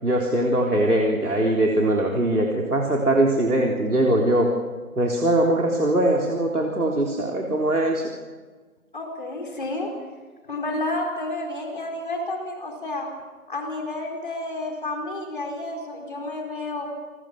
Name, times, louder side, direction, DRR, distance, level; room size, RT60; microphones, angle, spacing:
voice 1, 0.0-4.5 5.0-8.1, right 1 dB, 90° right, -1 dB, 4.0 m, -21 dB
voice 2, 8.9-9.9 10.5-13.1 13.5-16.9, left 2 dB, 35° left, 1 dB, 4.6 m, -30 dB
28.0 x 20.0 x 6.0 m, 1.4 s
figure-of-eight pair, 170°, 44 cm